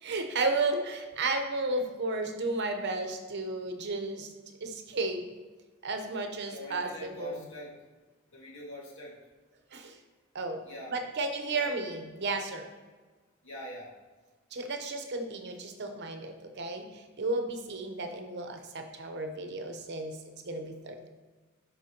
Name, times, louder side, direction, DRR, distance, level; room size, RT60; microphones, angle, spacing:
voice 1, 0.0-4.3 4.6-5.3 5.8-7.4 9.7-10.0 10.3-10.6 10.9-12.7 14.5-20.2 20.4-21.1, right 2 dB, 55° right, 5 dB, 0.9 m, -33 dB
voice 2, 6.5-7.7 8.3-9.1 10.6-10.9 11.4-11.8 13.4-13.9, equal, 65° left, -4 dB, 2.1 m, -43 dB
11.5 x 4.9 x 2.9 m, 1.3 s
head